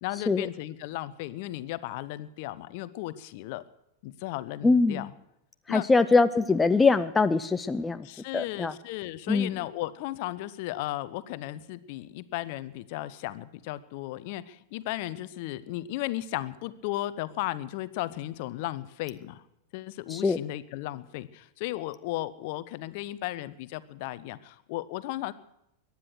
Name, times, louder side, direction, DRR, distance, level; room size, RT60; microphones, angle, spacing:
voice 1, 0.0-3.6 4.0-5.1 5.7-5.9 8.0-19.4 19.7-25.3, left 16 dB, 50° left, 15 dB, 0.9 m, -35 dB
voice 2, 4.6-5.0 5.7-8.1 8.3-8.7 9.3-9.5 20.1-20.4, left 4 dB, 10° left, 11 dB, 0.5 m, -23 dB
22.5 x 10.0 x 6.3 m, 0.84 s
figure-of-eight pair, 90°, 0 cm